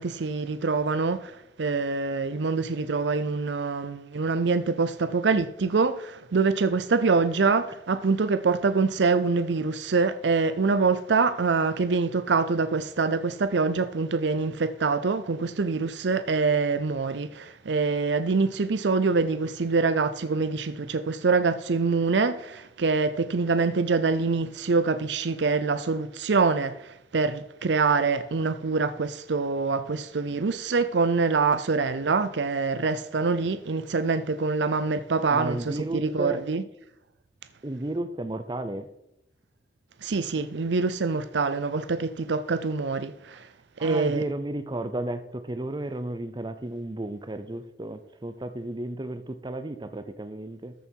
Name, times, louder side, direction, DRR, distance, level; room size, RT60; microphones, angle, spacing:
voice 1, 0.0-35.6 35.9-36.6 40.0-43.5 43.8-44.2, right 4 dB, 75° right, 0.6 m, -25 dB
voice 2, 35.3-36.4 37.6-38.9 43.8-50.7, right 1 dB, 25° right, 0.7 m, -33 dB
14.0 x 7.1 x 4.6 m
head